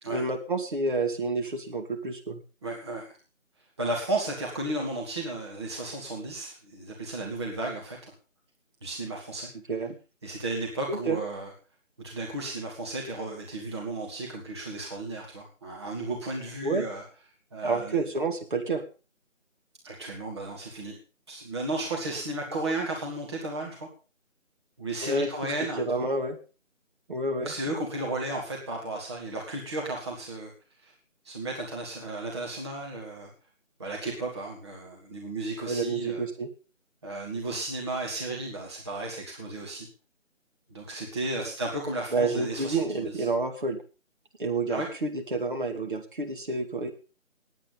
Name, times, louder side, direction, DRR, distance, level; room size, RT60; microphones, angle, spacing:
voice 1, 0.1-2.4 9.7-10.0 10.9-11.2 16.6-16.9 17.6-18.8 25.0-25.3 25.8-26.4 27.1-27.5 35.7-36.5 42.1-43.8 44.4-46.9, right 3 dB, 40° right, 4 dB, 2.5 m, -29 dB
voice 2, 2.6-3.2 3.8-8.1 8.8-9.5 10.2-11.5 12.0-17.0 17.5-18.1 19.8-21.0 21.3-23.9 24.8-26.1 27.4-30.5 30.8-30.9 31.2-33.3 33.8-36.2 37.0-39.9 40.7-43.3 44.7-44.9, right 2 dB, 20° right, -1 dB, 2.1 m, -34 dB
19.0 x 9.1 x 5.5 m, 0.35 s
figure-of-eight pair, 165°, 39 cm